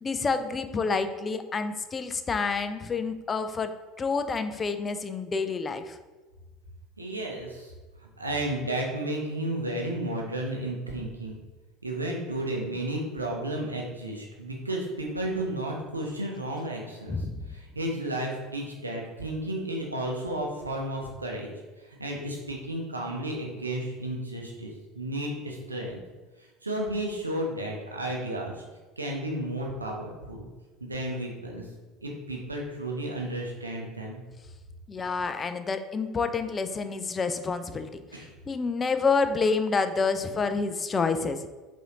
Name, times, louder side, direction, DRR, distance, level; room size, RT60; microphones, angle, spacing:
voice 1, 0.0-3.7 4.0-6.0 17.1-17.5 34.9-38.0 38.5-41.4, left 4 dB, 25° left, 9 dB, 0.3 m, -28 dB
voice 2, 7.0-7.7 8.0-11.4 11.8-21.5 21.8-26.0 26.4-28.6 29.0-30.5 30.8-31.7 32.0-34.2 38.1-38.3, right 1 dB, 85° right, 0 dB, 0.6 m, -33 dB
5.4 x 2.6 x 2.9 m, 1.3 s
figure-of-eight pair, 65°, 0 cm